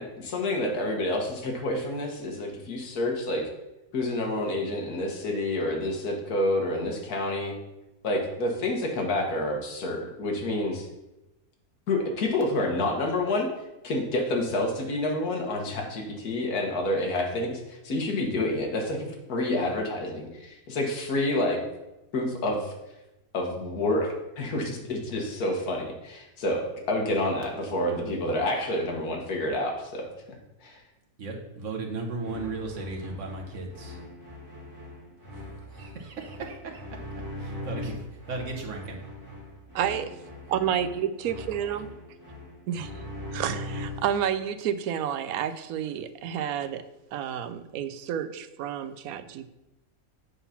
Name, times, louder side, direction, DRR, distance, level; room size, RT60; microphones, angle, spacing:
voice 1, 0.0-3.4 3.9-7.5 8.0-10.9 11.9-13.5 13.8-21.6 22.1-22.7 23.3-30.1 30.6-30.8, left 1 dB, 80° left, 1 dB, 1.7 m, -28 dB
voice 2, 31.2-34.0 35.3-36.8 37.4-38.0 38.3-39.0, right 3 dB, 55° right, 1 dB, 1.5 m, -36 dB
sound 1, 32.2-44.2, left 1 dB, 10° right, 1.9 m, -41 dB
voice 3, 39.7-40.2 40.5-41.9 42.7-42.9 43.3-46.8 47.1-49.5, right 9 dB, 75° right, 11 dB, 1.0 m, -30 dB
8.2 x 3.9 x 5.7 m, 0.96 s
omnidirectional pair, 1.6 m